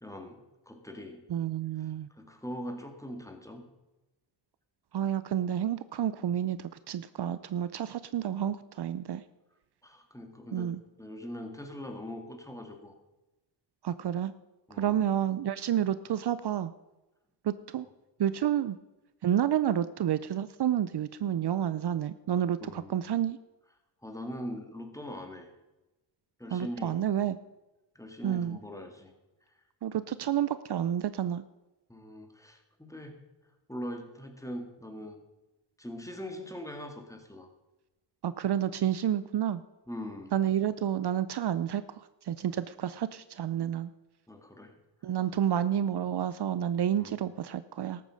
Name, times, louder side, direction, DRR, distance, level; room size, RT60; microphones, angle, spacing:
voice 1, 0.0-1.2 1.8-1.9 2.2-3.7 9.8-12.9 14.7-15.0 22.6-23.0 24.0-25.5 26.4-27.0 28.0-29.1 31.9-33.2 33.7-35.2 35.8-37.5 39.9-40.3 44.3-44.8 45.0-45.1 47.0-47.1, equal, 5° left, 5 dB, 2.1 m, -42 dB
voice 2, 1.3-2.1 4.9-9.2 10.5-10.8 13.8-14.3 14.8-16.7 17.4-17.9 18.2-18.8 19.2-23.4 26.5-27.4 28.2-28.6 29.8-31.4 38.2-39.6 40.3-43.9 45.0-48.0, right 10 dB, 60° right, 15 dB, 0.6 m, -30 dB
13.5 x 8.5 x 6.4 m, 1.0 s
cardioid pair, 75°, 44 cm